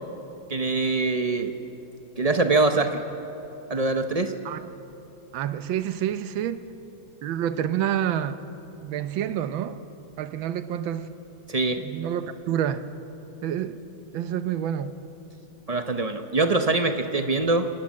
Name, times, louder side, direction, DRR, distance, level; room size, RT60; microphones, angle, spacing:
voice 1, 0.5-1.5 2.2-3.0 3.7-4.3 11.5-11.8 15.7-17.7, right 3 dB, 60° right, 7 dB, 0.4 m, -23 dB
voice 2, 5.3-6.6 7.2-8.4 8.8-9.8 10.2-11.1 11.8-12.9 13.4-13.8 14.1-15.0, right 10 dB, 75° right, 11 dB, 1.6 m, -28 dB
26.5 x 19.5 x 7.5 m, 3.0 s
omnidirectional pair, 2.2 m